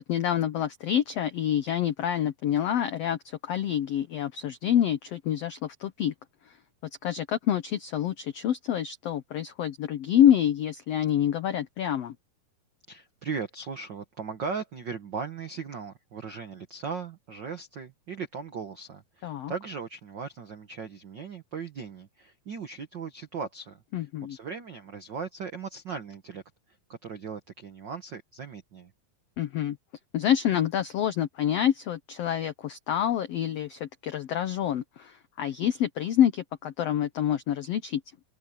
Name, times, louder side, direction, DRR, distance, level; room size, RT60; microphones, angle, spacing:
voice 1, 0.0-6.1 6.5-6.6 7.0-12.1 19.2-19.5 23.9-24.4 29.4-29.8 30.1-38.0, left 10 dB, 85° left, 1.4 m, -27 dB
voice 2, 12.9-26.4 26.9-28.9, right 5 dB, 80° right, 1.0 m, -38 dB
open air
omnidirectional pair, 4.0 m